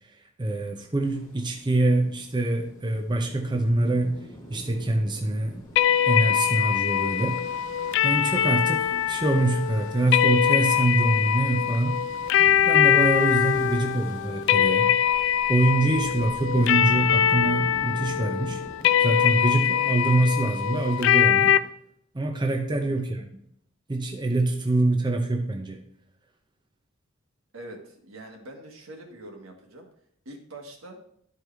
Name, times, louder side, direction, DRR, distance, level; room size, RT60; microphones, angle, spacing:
voice 1, 0.4-4.2 4.5-5.6 6.1-7.4 8.0-12.0 12.6-14.9 15.5-18.6 19.0-21.6 22.1-23.2 23.9-25.8, right 2 dB, 20° right, 2 dB, 0.6 m, -25 dB
sound 1, 1.0-20.1, equal, 20° left, 1.6 m, -45 dB
sound 2, 5.8-21.6, left 9 dB, 60° left, 0.3 m, -23 dB
voice 2, 27.5-29.9 30.2-31.0, right 1 dB, 75° right, 2 dB, 1.6 m, -44 dB
12.0 x 4.6 x 3.3 m, 0.69 s
head